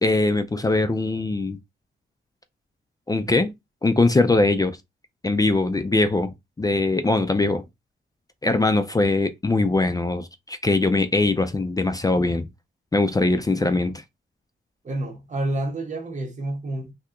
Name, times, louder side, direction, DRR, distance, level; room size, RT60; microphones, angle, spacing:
voice 1, 0.0-1.6 3.1-3.5 3.8-4.8 5.2-7.6 8.4-12.4 12.9-14.0, left 2 dB, 20° left, 0.3 m, -21 dB
voice 2, 14.8-16.9, right 1 dB, 35° right, 0.9 m, -29 dB
2.8 x 2.3 x 3.6 m
wide cardioid pair, 125°, 20 cm